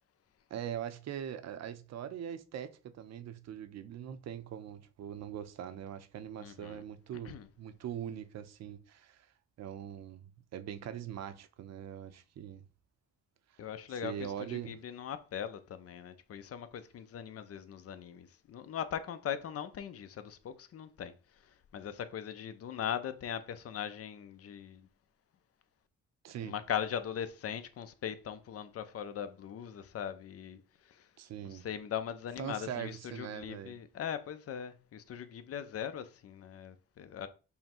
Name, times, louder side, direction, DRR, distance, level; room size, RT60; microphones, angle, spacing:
voice 1, 0.5-9.3 9.6-10.2 10.5-12.7 14.0-14.7 26.2-26.5 31.2-31.7 32.4-33.8, right 9 dB, 60° right, 0.7 m, -42 dB
voice 2, 6.4-6.8 7.2-7.5 13.6-24.9 26.4-31.1 31.4-37.3, left 9 dB, 50° left, 0.7 m, -40 dB
5.5 x 2.1 x 4.4 m
cardioid pair, 90°, 30 cm